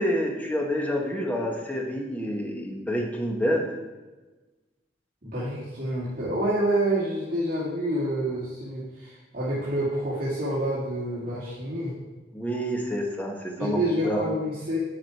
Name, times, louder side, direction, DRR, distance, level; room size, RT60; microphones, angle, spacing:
voice 1, 0.0-3.7 12.3-14.2, equal, 10° left, 0 dB, 1.2 m, -28 dB
voice 2, 5.2-11.9 13.6-14.8, right 1 dB, 50° right, -10 dB, 2.3 m, -28 dB
10.0 x 4.8 x 4.6 m, 1.2 s
head